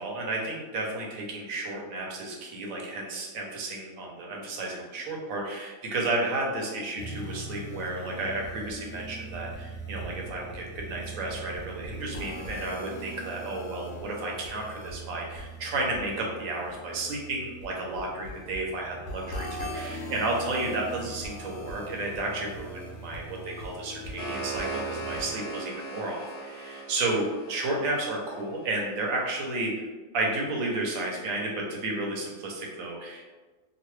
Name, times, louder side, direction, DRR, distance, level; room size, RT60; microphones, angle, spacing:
voice 1, 0.0-29.9 30.1-33.4, right 2 dB, 70° right, -1 dB, 1.1 m, -32 dB
sound 1, 7.0-25.4, right 2 dB, 65° left, 0.7 m, -41 dB
sound 2, 23.8-28.8, right 2 dB, 50° left, 1.3 m, -38 dB
3.0 x 2.5 x 3.1 m, 1.3 s
omnidirectional pair, 1.6 m